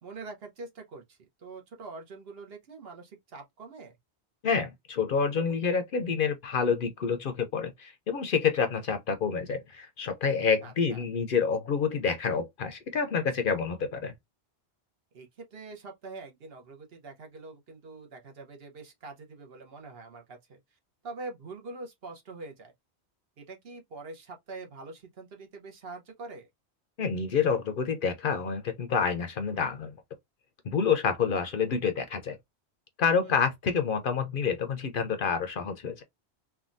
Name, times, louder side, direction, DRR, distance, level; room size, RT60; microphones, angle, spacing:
voice 1, 0.0-4.0 10.6-11.0 15.1-20.6 21.0-22.7 23.4-26.5 33.2-33.4, right 3 dB, 65° right, 1.1 m, -44 dB
voice 2, 4.4-14.1 27.0-30.0 30.6-32.4 33.0-36.0, left 6 dB, 60° left, 0.7 m, -28 dB
3.5 x 2.2 x 2.5 m
omnidirectional pair, 1.1 m